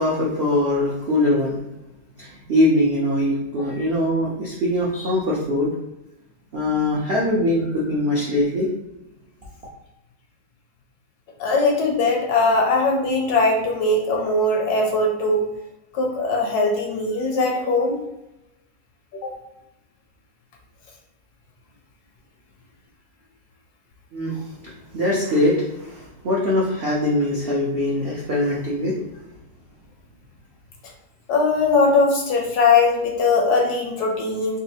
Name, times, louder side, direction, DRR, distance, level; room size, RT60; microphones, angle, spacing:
voice 1, 0.0-1.6 2.2-5.7 6.5-8.7 24.1-29.0, left 1 dB, 70° right, -5 dB, 0.5 m, -22 dB
voice 2, 11.4-15.5 15.9-18.0 19.2-19.3 31.3-34.6, left 3 dB, 70° left, 0 dB, 1.1 m, -20 dB
4.0 x 2.5 x 2.8 m, 0.89 s
omnidirectional pair, 2.0 m